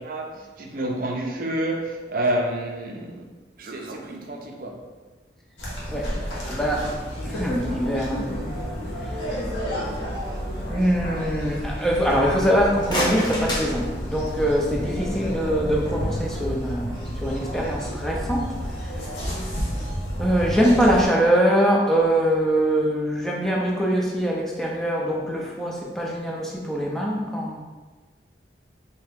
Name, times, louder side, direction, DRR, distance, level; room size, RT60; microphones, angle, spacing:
voice 1, 0.0-3.2 3.6-4.9, right 1 dB, 50° right, 2 dB, 0.5 m, -29 dB
sound 1, 5.6-21.1, equal, 85° left, 1.1 m, -30 dB
voice 2, 6.5-6.9 7.3-8.6 9.0-9.1 10.7-18.5 18.8-19.1 20.2-27.6, equal, ahead, -2 dB, 0.5 m, -23 dB
sound 2, 12.6-14.6, left 1 dB, 25° left, 0.8 m, -29 dB
3.3 x 2.8 x 3.5 m, 1.3 s
head